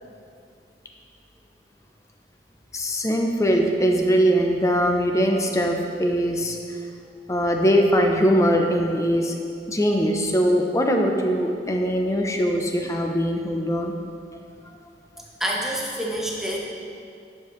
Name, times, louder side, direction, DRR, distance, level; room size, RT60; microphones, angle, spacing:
voice 1, 2.7-6.6 7.3-9.3 9.7-13.9, equal, 20° left, 2 dB, 0.6 m, -21 dB
voice 2, 15.4-16.6, right 1 dB, ahead, -4 dB, 1.0 m, -27 dB
10.0 x 6.9 x 3.1 m, 2.4 s
head